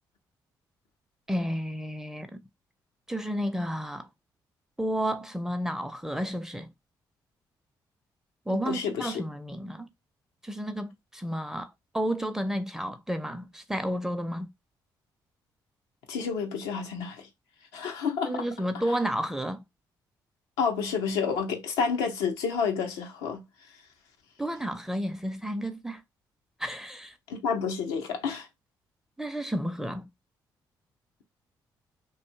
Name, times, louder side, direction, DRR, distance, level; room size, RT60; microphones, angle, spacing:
voice 1, 1.3-2.4 3.1-4.1 4.8-6.7 8.5-9.9 10.4-14.5 18.3-19.6 24.4-26.0 26.6-27.1 29.2-30.1, equal, 5° right, 0.6 m, -31 dB
voice 2, 8.5-9.1 16.1-17.3 17.7-18.4 20.6-23.4 27.3-28.5, left 6 dB, 85° left, 0.7 m, -29 dB
2.6 x 2.3 x 2.7 m
supercardioid pair, 50°, 9 cm